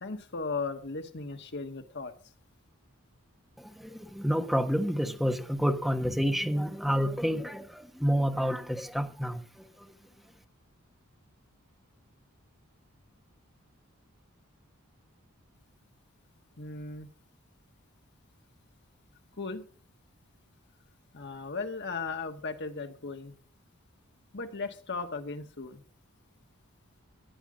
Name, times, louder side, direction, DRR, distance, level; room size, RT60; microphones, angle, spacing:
voice 1, 0.0-2.1 16.6-17.1 19.4-19.6 21.1-23.3 24.3-25.8, left 4 dB, 55° left, 6 dB, 1.6 m, -36 dB
voice 2, 3.6-9.9, equal, ahead, 5 dB, 1.4 m, -29 dB
15.0 x 9.3 x 5.2 m, 0.42 s
head